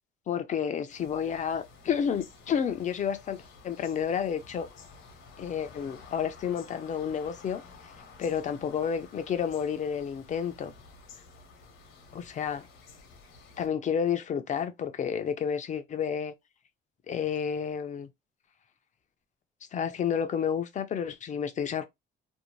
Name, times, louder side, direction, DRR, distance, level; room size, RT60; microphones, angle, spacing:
voice 1, 0.3-3.4 3.6-4.7 5.4-7.6 8.2-10.7 12.1-12.7 13.6-16.3 17.1-18.1 19.7-21.9, left 7 dB, 35° left, 0.5 m, -30 dB
sound 1, 0.9-13.7, left 4 dB, 65° left, 0.9 m, -52 dB
2.6 x 2.1 x 3.0 m
cardioid pair, 120°, 21 cm